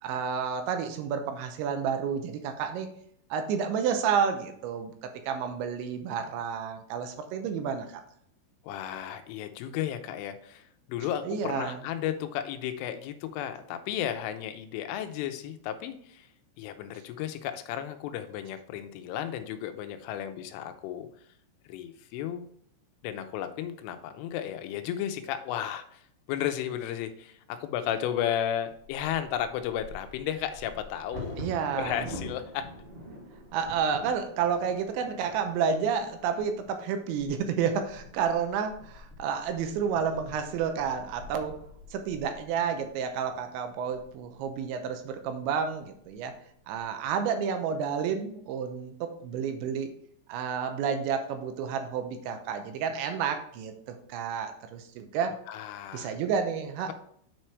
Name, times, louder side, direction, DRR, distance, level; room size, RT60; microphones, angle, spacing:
voice 1, 0.0-2.9 3.3-8.0 11.3-11.8 31.4-32.0 33.5-41.6 41.9-46.3 46.7-49.9 50.3-55.4 55.9-56.9, right 7 dB, 80° right, 7 dB, 2.9 m, -30 dB
voice 2, 8.6-16.3 16.6-21.1 21.7-22.5 23.0-26.0 26.3-31.4 31.8-32.7 55.5-56.2, left 10 dB, 85° left, 8 dB, 3.2 m, -34 dB
Bird vocalization bird call bird song / Wind / Thunder, 28.7-44.6 45.2-45.3 45.7-46.1 46.5-47.0, left 1 dB, 40° right, 0.7 m, -46 dB
9.3 x 4.4 x 4.7 m, 0.65 s
omnidirectional pair, 5.6 m